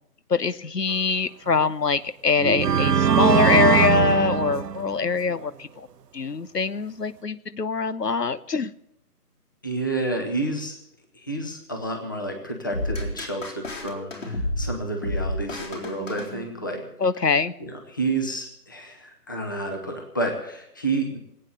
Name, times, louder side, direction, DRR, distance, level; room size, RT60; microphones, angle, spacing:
voice 1, 0.3-5.9 6.1-8.7 17.0-17.5, left 5 dB, 80° left, 16 dB, 1.0 m, -23 dB
sound 1, 1.5-1.7 2.4-5.2, right 8 dB, 75° right, 0.7 m, -21 dB
voice 2, 9.6-10.8 11.1-16.8 17.6-21.2, right 2 dB, 15° left, 3 dB, 0.9 m, -30 dB
sound 2, 12.7-16.9, left 1 dB, 50° left, 4.0 m, -31 dB
19.0 x 9.1 x 8.0 m, 0.77 s
figure-of-eight pair, 150°, 48 cm